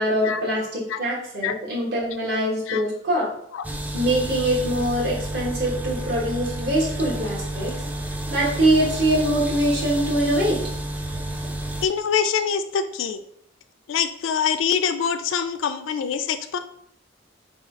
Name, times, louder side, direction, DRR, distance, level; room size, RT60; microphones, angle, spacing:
voice 1, 0.0-3.3 3.9-7.8 8.3-10.6, right 1 dB, 60° right, -4 dB, 1.3 m, -23 dB
sound 1, 3.6-11.9, right 1 dB, 10° right, 0.3 m, -30 dB
voice 2, 11.8-13.2 13.9-16.6, left 7 dB, 85° left, 10 dB, 0.4 m, -24 dB
3.6 x 2.3 x 4.5 m, 0.69 s
head